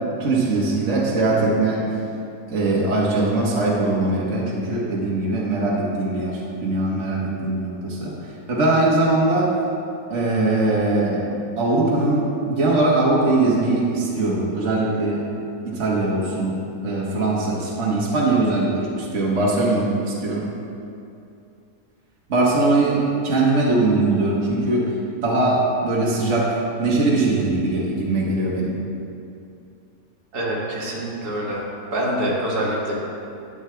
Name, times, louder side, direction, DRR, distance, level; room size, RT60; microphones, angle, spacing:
voice 1, 0.2-1.8 2.5-8.1 8.5-9.6 10.1-15.3 15.6-20.5 22.3-24.9 25.2-28.7, right 2 dB, 45° right, -5 dB, 1.6 m, -21 dB
voice 2, 30.3-31.7 31.9-32.9, right 1 dB, 70° right, -4 dB, 2.1 m, -25 dB
11.5 x 9.7 x 3.4 m, 2.6 s
omnidirectional pair, 1.8 m